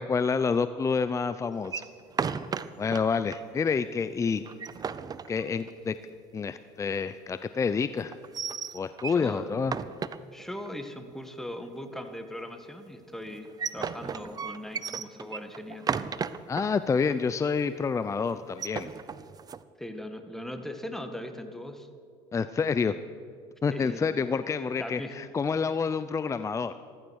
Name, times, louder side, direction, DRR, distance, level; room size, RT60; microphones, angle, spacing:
voice 1, 0.0-1.8 2.8-4.5 5.3-5.9 6.3-8.2 8.7-9.7 16.5-18.9 22.3-22.9 23.6-26.7, left 5 dB, 20° left, 12 dB, 0.5 m, -28 dB
sound 1, 1.6-3.0 3.3-3.4 3.8-3.9 4.4-5.9 8.1-9.3 9.6-10.7 13.3-16.7 17.1-17.2 17.5-17.8 18.4-19.6, right 6 dB, 30° right, 0.7 m, -34 dB
voice 2, 9.1-9.8 10.3-15.9 19.8-21.9 23.7-24.1 24.8-25.2, left 1 dB, 5° left, 7 dB, 1.7 m, -39 dB
14.5 x 14.5 x 6.4 m, 2.3 s
supercardioid pair, 100°, 14 cm